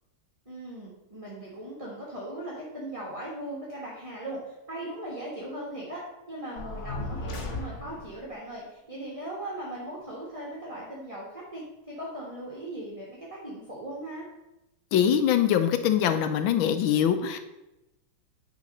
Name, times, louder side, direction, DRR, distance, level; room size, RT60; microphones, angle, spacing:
voice 1, 0.4-6.0 6.3-14.3, right 1 dB, 20° right, -4 dB, 1.2 m, -39 dB
sound 1, 6.6-8.2, left 2 dB, 45° left, 1.0 m, -35 dB
voice 2, 14.9-17.4, left 9 dB, 75° left, 9 dB, 1.3 m, -23 dB
9.3 x 3.9 x 5.3 m, 0.94 s
omnidirectional pair, 2.4 m